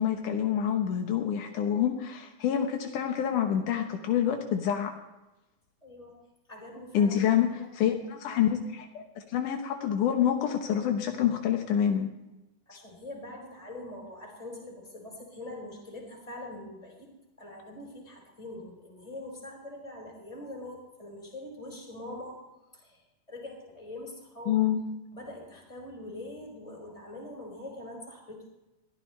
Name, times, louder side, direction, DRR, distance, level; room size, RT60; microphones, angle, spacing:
voice 1, 0.0-4.9 6.9-12.1 24.5-24.8, left 9 dB, 80° left, 4 dB, 2.6 m, -27 dB
voice 2, 5.8-6.1 6.5-7.2 7.5-7.7 8.3-8.4 12.7-17.1 17.4-22.4 22.7-24.6 25.1-28.5, left 1 dB, 10° left, -1 dB, 5.2 m, -43 dB
21.5 x 14.5 x 3.3 m, 1.0 s
omnidirectional pair, 3.6 m